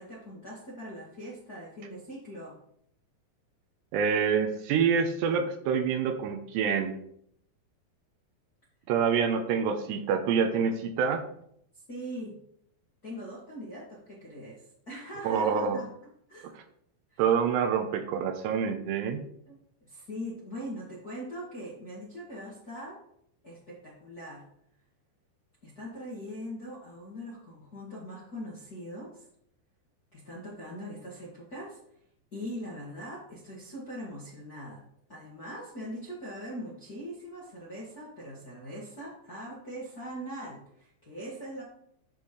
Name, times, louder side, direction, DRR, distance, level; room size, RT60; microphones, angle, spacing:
voice 1, 0.0-2.6 11.9-12.4 13.0-15.9 16.3-16.5 17.1-17.2 19.5-23.0 23.4-24.4 25.6-29.3 30.1-31.8 32.3-34.8 35.1-41.6, equal, 40° left, -6 dB, 1.3 m, -41 dB
voice 2, 3.9-6.9 8.9-11.2 15.2-15.8 17.2-19.2, right 6 dB, 80° right, 6 dB, 2.8 m, -26 dB
13.0 x 5.5 x 3.2 m, 0.70 s
omnidirectional pair, 5.0 m